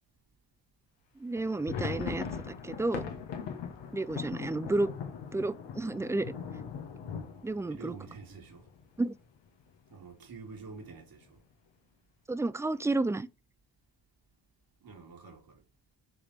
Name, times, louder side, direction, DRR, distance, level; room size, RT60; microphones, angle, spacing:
voice 1, 1.2-3.0 3.9-4.9 5.3-6.3 7.4-7.9 9.0-9.1 12.3-13.3, right 2 dB, 5° right, 0.3 m, -31 dB
sound 1, 1.3-9.0 9.4-9.5 9.7-10.0 10.5-11.0, left 6 dB, 75° left, 1.5 m, -40 dB
voice 2, 7.7-8.7 9.9-11.4 14.8-15.6, right 4 dB, 50° right, 2.5 m, -47 dB
6.9 x 3.3 x 4.2 m
supercardioid pair, 60°, 44 cm